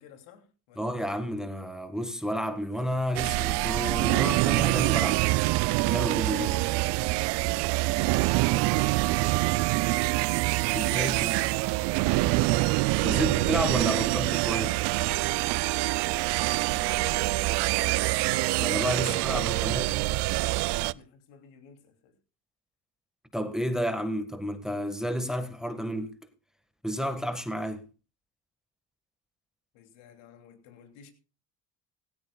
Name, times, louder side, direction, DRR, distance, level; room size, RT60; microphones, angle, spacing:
voice 1, 0.0-1.0 8.7-10.0 10.6-12.6 16.4-17.6 19.0-22.1 29.7-31.1, left 7 dB, 75° left, 2.9 m, -52 dB
voice 2, 0.8-5.2 5.8-6.7 10.7-11.4 13.0-14.8 18.6-19.9 23.3-26.1 26.8-27.8, equal, ahead, 1.5 m, -31 dB
sound 1, 3.1-20.9, right 21 dB, 65° right, 0.5 m, -25 dB
17.5 x 16.0 x 2.3 m
hypercardioid pair, 70°, 46 cm